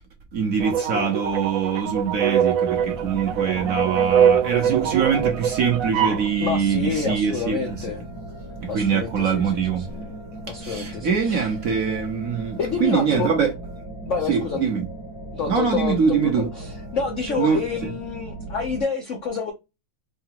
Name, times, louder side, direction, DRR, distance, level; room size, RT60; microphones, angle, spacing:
voice 1, 0.3-7.6 8.6-9.8 10.6-13.5 14.3-14.9 15.5-16.5 17.4-17.6, right 6 dB, 55° right, 1.1 m, -23 dB
sound 1, 0.6-6.3, right 8 dB, 90° right, 0.7 m, -23 dB
sound 2, 2.7-18.8, right 1 dB, 20° left, 0.6 m, -37 dB
voice 2, 6.4-8.0 8.7-10.0 10.5-11.5 12.6-13.3 14.1-14.7 15.3-19.5, left 5 dB, 75° left, 0.7 m, -28 dB
4.8 x 2.4 x 2.8 m
omnidirectional pair, 2.2 m